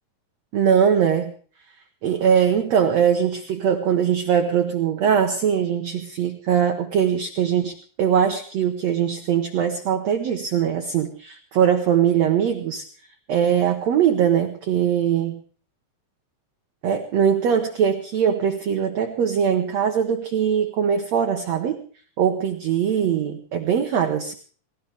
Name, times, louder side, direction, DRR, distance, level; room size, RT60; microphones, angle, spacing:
voice 1, 0.5-1.3 2.0-12.8 13.3-15.4 16.8-21.8 22.2-24.3, right 8 dB, 65° right, 4 dB, 1.8 m, -21 dB
18.0 x 18.0 x 3.5 m, 0.43 s
omnidirectional pair, 4.3 m